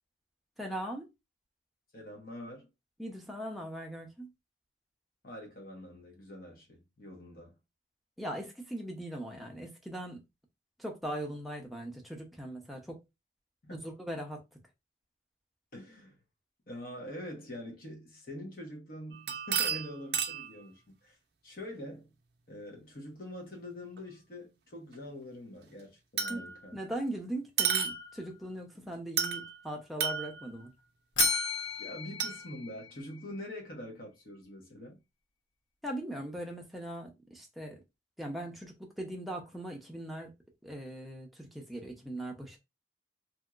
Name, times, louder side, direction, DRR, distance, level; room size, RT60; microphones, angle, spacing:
voice 1, 0.6-1.1 3.0-4.3 8.2-10.2 10.8-13.0 13.7-14.4 26.3-26.4 26.7-30.7 35.8-37.8 38.2-40.3 40.6-42.6, right 1 dB, ahead, 0.6 m, -40 dB
voice 2, 1.9-2.7 5.2-7.5 13.6-13.9 15.7-16.2 16.7-21.2 21.4-22.1 22.5-26.8 31.8-35.0, left 1 dB, 50° left, 1.0 m, -45 dB
sound 1, 19.1-20.5 24.0-24.1 26.2-26.7 27.6-28.3 29.2-29.6 30.0-30.6 31.2-31.8 32.2-32.4, right 7 dB, 60° right, 0.5 m, -32 dB
Bell, 31.1-33.4, left 5 dB, 80° left, 0.8 m, -33 dB
2.9 x 2.7 x 2.3 m
head